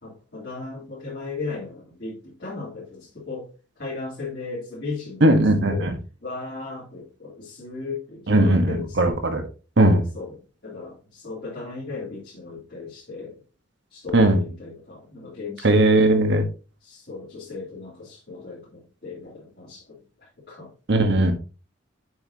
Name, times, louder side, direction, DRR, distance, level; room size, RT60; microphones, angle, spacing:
voice 1, 0.0-3.5 3.8-5.4 5.7-5.9 6.2-9.1 10.1-10.3 10.6-13.4 13.9-15.9 16.8-20.0 20.5-20.7, left 4 dB, 55° left, -8 dB, 3.0 m, -36 dB
voice 2, 5.2-6.0 8.3-9.4 9.8-10.0 14.1-14.4 15.6-16.4 20.9-21.3, right 1 dB, 65° right, 7 dB, 1.3 m, -18 dB
7.8 x 5.8 x 2.8 m, 0.33 s
head